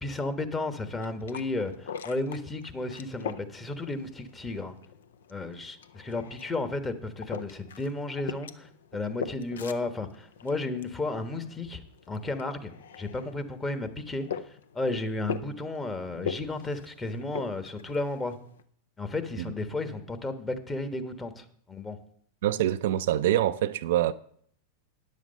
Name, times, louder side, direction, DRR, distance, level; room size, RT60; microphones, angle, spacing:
voice 1, 0.0-4.7 5.3-11.8 12.1-12.7 13.0-14.3 14.7-18.4 19.0-22.0, left 2 dB, 20° left, 1.2 m, -33 dB
sound 1, 0.8-18.6, left 7 dB, 75° left, 0.5 m, -42 dB
voice 2, 22.4-24.1, right 12 dB, 65° right, 0.4 m, -25 dB
9.8 x 7.4 x 5.2 m
hypercardioid pair, 95°, 0 cm